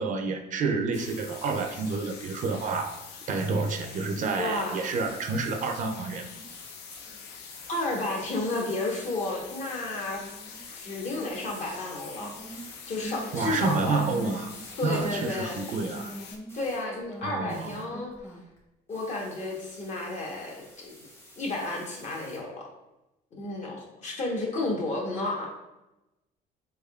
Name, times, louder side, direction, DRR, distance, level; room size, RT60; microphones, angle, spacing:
voice 1, 0.0-3.0 3.3-6.3 13.3-14.5 14.8-16.1 17.2-17.9, right 4 dB, 50° right, 5 dB, 0.4 m, -29 dB
sound 1, 0.9-16.4, left 6 dB, 80° left, 0.5 m, -45 dB
voice 2, 4.4-4.8 7.7-10.2 10.7-12.4 12.9-14.1 14.8-15.6 16.5-18.1 18.9-20.9 21.4-22.7 23.3-25.5, left 2 dB, 45° left, -1 dB, 1.0 m, -32 dB
sound 2, 5.6-7.2 7.5-8.1 8.5-18.6 18.9-22.4, equal, 15° left, 0.8 m, -45 dB
3.5 x 3.4 x 2.3 m, 0.93 s
cardioid pair, 110°, 17 cm